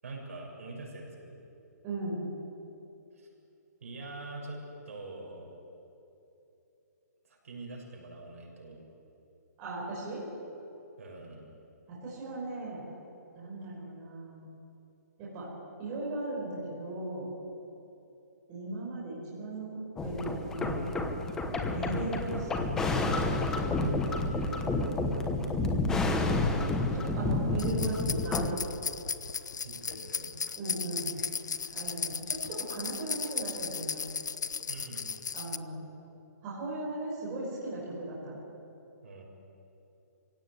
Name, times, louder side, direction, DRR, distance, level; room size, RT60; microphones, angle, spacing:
voice 1, 0.0-1.4 3.2-3.3 3.8-5.5 7.3-8.8 11.0-11.5 24.3-25.0 29.6-30.4 34.7-35.1 39.0-39.2, right 2 dB, 55° right, -1 dB, 6.8 m, -44 dB
voice 2, 1.8-2.3 9.6-10.2 11.9-12.8 13.3-14.5 15.2-15.5 15.8-17.3 18.5-21.0 21.7-23.1 25.4-25.9 26.9-28.8 30.6-31.2 31.7-34.1 35.3-35.8 36.4-38.4, right 2 dB, 20° right, -6 dB, 5.2 m, -37 dB
sound 1, 20.0-28.5, left 2 dB, 5° left, 1.0 m, -30 dB
sound 2, 27.6-35.6, left 6 dB, 90° left, 0.9 m, -36 dB
24.0 x 17.0 x 9.5 m, 2.9 s
hypercardioid pair, 175°, 9 cm